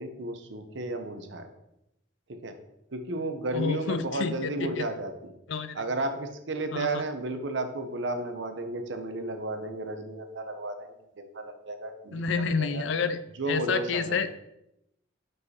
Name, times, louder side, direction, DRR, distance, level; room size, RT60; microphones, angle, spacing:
voice 1, 0.0-1.5 2.3-2.5 2.9-5.3 5.7-12.8 13.4-14.2, right 2 dB, 65° right, 7 dB, 0.7 m, -33 dB
voice 2, 3.5-4.9 5.5-5.8 6.7-7.0 12.1-13.2 13.5-14.3, left 5 dB, 65° left, 12 dB, 0.4 m, -29 dB
4.9 x 4.7 x 4.2 m, 0.85 s
head